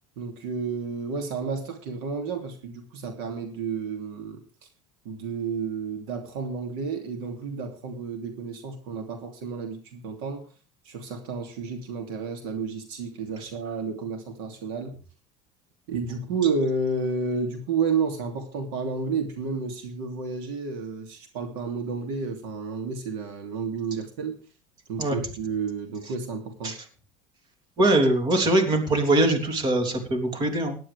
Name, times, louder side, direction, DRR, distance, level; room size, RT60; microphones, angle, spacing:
voice 1, 0.2-4.4 5.0-10.4 10.8-15.0 15.9-24.4 24.9-26.8, right 4 dB, 85° right, 5 dB, 2.9 m, -31 dB
voice 2, 27.8-30.8, right 1 dB, 35° right, 5 dB, 3.3 m, -22 dB
18.0 x 11.5 x 3.5 m, 0.38 s
cardioid pair, 145°, 12 cm